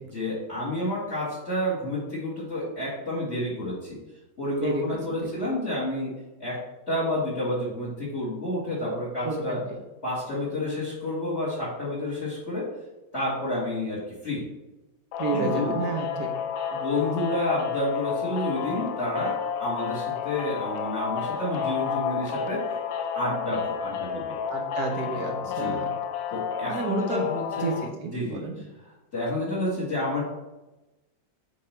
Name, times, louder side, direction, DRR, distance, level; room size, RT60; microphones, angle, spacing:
voice 1, 0.1-4.0 4.4-6.1 6.4-6.6 6.9-9.6 10.0-12.7 13.1-14.4 15.3-15.7 16.7-22.7 23.1-24.4 25.4-25.8 26.3-27.7 28.0-28.4 28.8-30.2, left 1 dB, 35° left, -7 dB, 2.1 m, -30 dB
voice 2, 9.2-9.6 15.2-16.3 24.5-25.9 26.7-27.3 27.6-28.5, right 4 dB, 60° right, 2 dB, 1.2 m, -30 dB
sound 1, 15.1-27.9, left 8 dB, 80° left, 1.3 m, -31 dB
8.5 x 2.9 x 4.4 m, 1.0 s
omnidirectional pair, 2.0 m